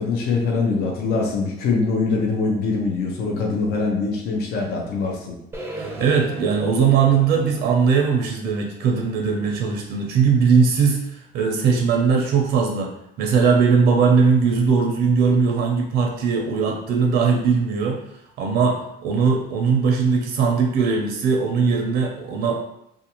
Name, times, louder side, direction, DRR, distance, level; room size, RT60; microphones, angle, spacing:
voice 1, 0.0-5.3, left 4 dB, 70° left, -1 dB, 0.6 m, -23 dB
sound 1, 5.5-9.6, right 2 dB, 15° right, 0.4 m, -37 dB
voice 2, 5.7-12.9 13.2-18.0 18.4-22.6, right 5 dB, 75° right, 1 dB, 0.5 m, -19 dB
2.5 x 2.3 x 2.9 m, 0.75 s
cardioid pair, 110°, 17 cm